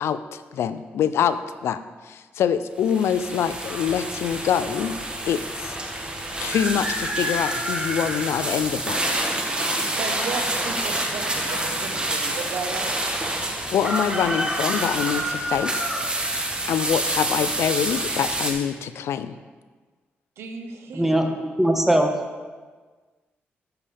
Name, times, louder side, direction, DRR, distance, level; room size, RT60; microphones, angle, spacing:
voice 1, 0.0-1.8 2.1-5.0 5.3-5.8 6.4-9.0 13.7-16.0 16.7-19.3, left 8 dB, 85° left, 13 dB, 0.4 m, -25 dB
sound 1, 2.8-18.5, right 1 dB, 20° right, 1.7 m, -27 dB
voice 2, 9.7-12.9 20.4-21.3, right 4 dB, 90° right, 5 dB, 1.0 m, -34 dB
voice 3, 20.9-22.1, right 1 dB, 5° right, 4 dB, 1.2 m, -20 dB
12.5 x 6.9 x 3.4 m, 1.4 s
cardioid pair, 75°, 4 cm